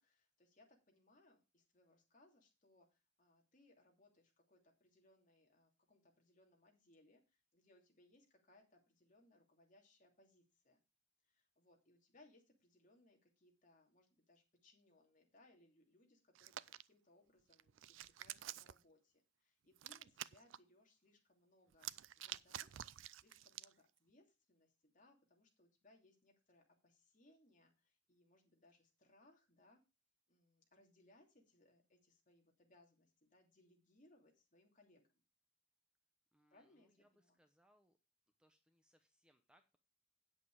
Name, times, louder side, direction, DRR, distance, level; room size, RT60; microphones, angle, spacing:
voice 1, 0.0-10.8 11.2-29.8 30.3-35.1 36.5-37.4, left 2 dB, 40° left, 1 dB, 2.9 m, -71 dB
Hands, 16.4-16.8 17.5-18.8 19.8-20.6 21.7-23.7, right 12 dB, 80° right, 0.4 m, -49 dB
voice 2, 36.3-38.0 38.4-39.8, equal, 5° right, 6 dB, 0.8 m, -75 dB
9.2 x 7.8 x 4.8 m, 0.27 s
head